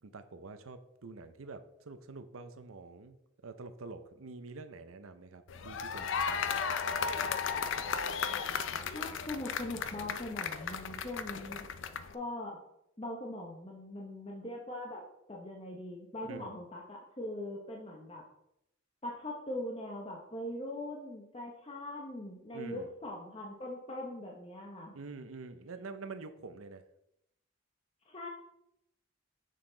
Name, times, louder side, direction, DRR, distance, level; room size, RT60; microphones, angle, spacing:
voice 1, 0.0-3.2 3.4-6.6 7.0-7.3 16.2-16.5 22.5-22.9 24.9-26.8, right 3 dB, 85° right, 10 dB, 0.7 m, -47 dB
sound 1, 5.5-12.1, left 6 dB, 65° left, 0.5 m, -35 dB
voice 2, 8.9-11.7 12.1-12.6 13.0-15.0 15.3-18.2 19.0-25.0 28.1-28.3, left 1 dB, 25° left, -1 dB, 0.8 m, -41 dB
6.6 x 5.9 x 3.8 m, 0.81 s
head